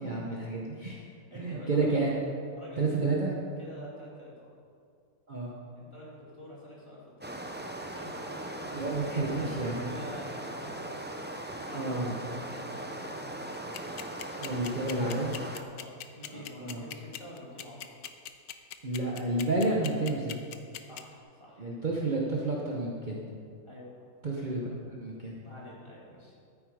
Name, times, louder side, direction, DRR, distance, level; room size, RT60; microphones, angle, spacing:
voice 1, 0.0-1.0 1.4-2.1 2.8-3.3 5.3-5.5 8.7-9.9 11.7-12.1 14.4-15.3 16.3-16.8 18.8-20.3 21.6-23.2 24.2-24.6 25.0-25.3, right 2 dB, 35° right, -3 dB, 1.2 m, -30 dB
voice 2, 1.0-2.0 2.6-3.0 3.6-4.5 5.7-7.6 7.9-10.9 11.3-13.2 14.8-15.3 15.7-18.0 20.9-21.7 23.7-23.9 24.4-24.8 25.4-26.3, left 1 dB, 20° left, -7 dB, 3.0 m, -47 dB
sound 1, 7.2-15.6, right 1 dB, 15° right, 0.4 m, -39 dB
sound 2, 13.5-21.0, left 11 dB, 80° left, 1.1 m, -40 dB
13.0 x 8.8 x 4.9 m, 2.3 s
omnidirectional pair, 1.5 m